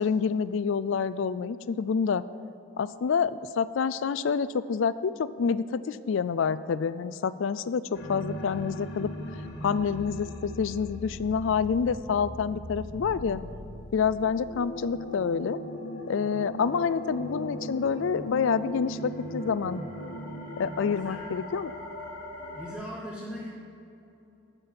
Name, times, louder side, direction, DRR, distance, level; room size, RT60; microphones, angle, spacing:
voice 1, 0.0-2.2 2.8-9.1 9.6-13.4 13.9-15.6 16.1-19.8 20.6-21.7, left 6 dB, 65° left, 15 dB, 0.4 m, -27 dB
sound 1, 7.9-22.7, equal, 50° left, 1.4 m, -39 dB
voice 2, 20.8-21.3 22.5-23.5, equal, 5° right, -4 dB, 0.8 m, -39 dB
12.5 x 6.9 x 5.7 m, 2.8 s
head